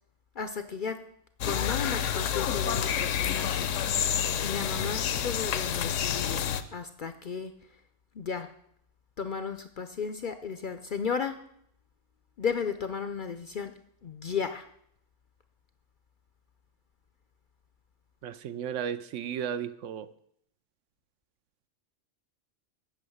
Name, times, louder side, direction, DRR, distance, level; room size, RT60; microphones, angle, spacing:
voice 1, 0.4-1.0 1.4-3.7 4.4-7.5 8.2-8.5 9.2-11.4 12.4-13.7 14.0-14.7, left 6 dB, 55° left, 9 dB, 0.6 m, -34 dB
sound 1, 1.4-6.6, left 9 dB, 75° left, 1.0 m, -29 dB
voice 2, 18.2-20.1, right 8 dB, 75° right, 13 dB, 0.9 m, -34 dB
8.5 x 6.2 x 7.8 m, 0.70 s
omnidirectional pair, 1.3 m